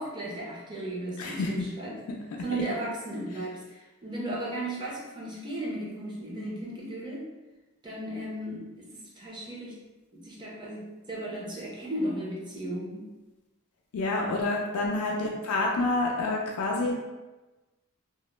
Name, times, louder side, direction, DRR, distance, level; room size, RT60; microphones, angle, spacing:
voice 1, 0.0-1.9 2.4-7.2 7.8-8.8 9.2-9.8 10.1-13.1 15.0-15.4, right 1 dB, 20° right, -5 dB, 0.6 m, -35 dB
voice 2, 1.2-1.5 13.9-16.9, left 2 dB, 70° left, -1 dB, 0.3 m, -28 dB
2.2 x 2.0 x 3.0 m, 1.1 s
head